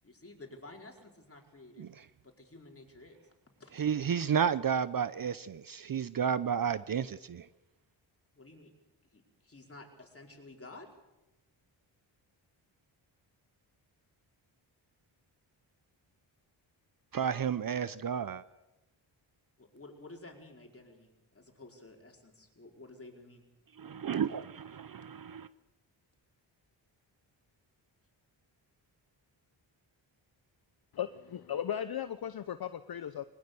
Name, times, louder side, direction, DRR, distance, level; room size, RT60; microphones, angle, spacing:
voice 1, 0.0-1.9 2.2-3.2 3.6-3.8 8.3-8.7 9.1-10.9 19.6-23.4 24.1-24.2, left 2 dB, 30° left, 4.8 m, -52 dB
voice 2, 3.7-7.5 17.1-18.4 23.8-25.5, right 7 dB, 45° right, 0.7 m, -32 dB
voice 3, 30.9-33.2, left 9 dB, 50° left, 0.8 m, -36 dB
21.0 x 19.5 x 6.9 m
cardioid pair, 65°, 48 cm